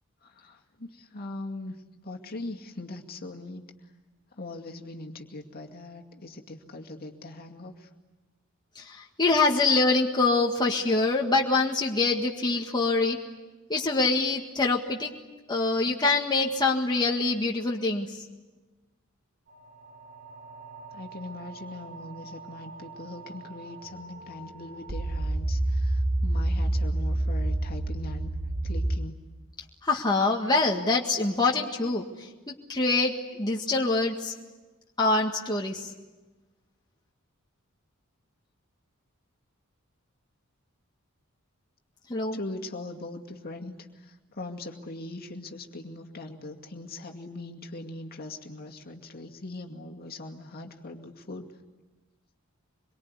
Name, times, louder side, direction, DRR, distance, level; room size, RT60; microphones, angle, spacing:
voice 1, 0.2-3.9 4.3-7.9 20.9-28.4 28.6-29.2 42.3-51.5, left 2 dB, 45° left, 3 dB, 2.4 m, -41 dB
voice 2, 8.8-13.2 13.7-15.1 15.5-18.3 29.8-34.3 35.0-35.9 42.1-42.4, left 3 dB, 20° left, -1 dB, 1.8 m, -25 dB
sound 1, 19.5-29.0, right 1 dB, 45° right, 5.6 m, -31 dB
25.5 x 23.0 x 9.7 m, 1.2 s
head